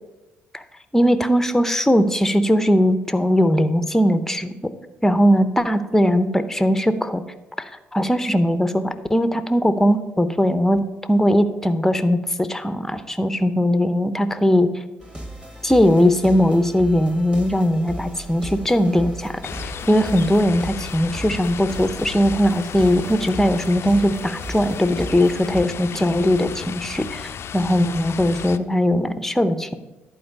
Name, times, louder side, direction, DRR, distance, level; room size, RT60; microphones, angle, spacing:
voice 1, 0.9-4.5 5.0-7.2 7.6-10.8 11.1-14.7 15.6-29.7, equal, 5° left, 12 dB, 0.7 m, -19 dB
sound 1, 15.0-25.7, right 1 dB, 15° right, 1.8 m, -36 dB
sound 2, 19.4-28.6, left 8 dB, 50° left, 0.4 m, -34 dB
11.0 x 4.5 x 5.3 m, 1.0 s
hypercardioid pair, 50°, 6 cm